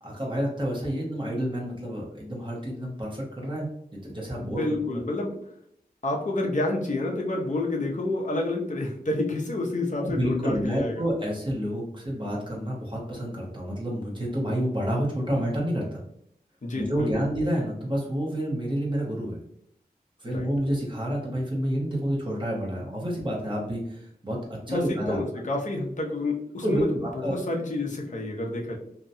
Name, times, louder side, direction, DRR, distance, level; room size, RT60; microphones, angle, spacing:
voice 1, 0.0-4.8 10.0-16.0 16.7-19.4 20.2-24.4 24.7-25.2 26.6-27.4, equal, 30° right, -3 dB, 0.9 m, -29 dB
voice 2, 4.4-5.4 6.0-11.0 16.6-17.1 20.3-20.5 24.7-28.8, left 2 dB, 50° left, 0 dB, 0.6 m, -29 dB
2.7 x 2.2 x 2.6 m, 0.72 s
wide cardioid pair, 65°, 16 cm